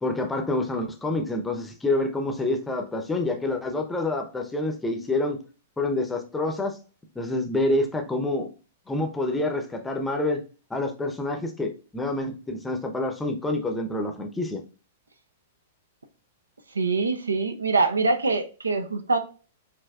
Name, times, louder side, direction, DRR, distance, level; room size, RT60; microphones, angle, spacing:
voice 1, 0.0-5.4 5.8-6.8 7.2-8.5 8.9-10.4 10.7-14.6, left 2 dB, 10° left, 0.7 m, -27 dB
voice 2, 16.8-19.2, right 3 dB, 80° right, 0.5 m, -24 dB
5.6 x 2.6 x 2.3 m
figure-of-eight pair, 105°, 0 cm